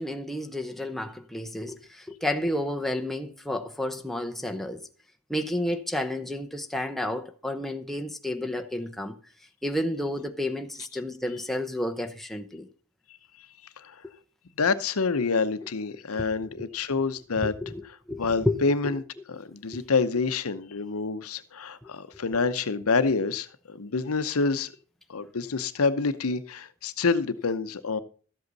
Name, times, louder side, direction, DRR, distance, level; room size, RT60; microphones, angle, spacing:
voice 1, 0.0-4.9 5.3-9.1 9.6-12.7 16.2-16.3 16.6-16.7 17.4-18.6, left 1 dB, ahead, 0.8 m, -31 dB
voice 2, 14.6-17.5 18.2-19.0 19.3-24.7 25.1-28.0, left 4 dB, 75° left, 0.8 m, -27 dB
13.0 x 8.0 x 4.0 m
head